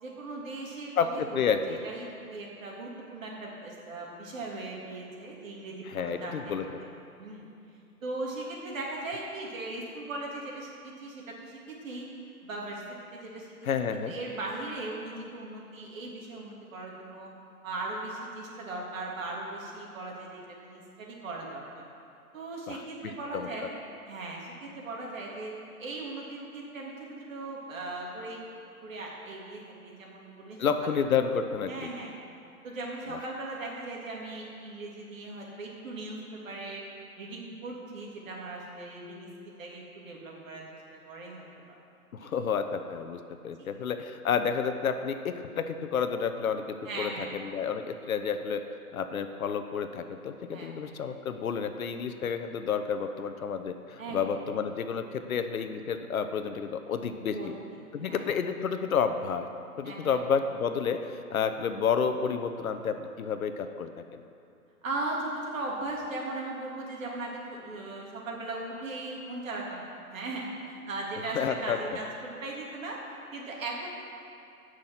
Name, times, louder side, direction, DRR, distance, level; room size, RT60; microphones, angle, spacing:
voice 1, 0.0-6.7 7.2-7.4 8.0-12.1 12.4-13.5 13.9-17.3 17.6-21.8 22.3-23.7 24.0-25.5 25.8-28.4 28.8-30.9 31.7-32.1 32.6-36.8 37.2-40.6 40.9-41.8 42.2-42.3 43.6-43.7 46.8-47.3 50.5-50.7 54.0-54.4 57.3-57.5 58.0-58.3 59.8-60.2 64.8-73.0 73.3-73.9, right 2 dB, 60° right, -2 dB, 3.1 m, -38 dB
voice 2, 1.0-1.8 5.9-6.7 13.6-14.1 22.7-23.5 30.6-31.7 42.2-48.6 48.9-57.4 57.9-59.5 59.8-63.9 71.3-71.8, left 6 dB, 65° left, 8 dB, 0.9 m, -30 dB
15.5 x 6.3 x 5.8 m, 2.6 s
hypercardioid pair, 140°, 45 cm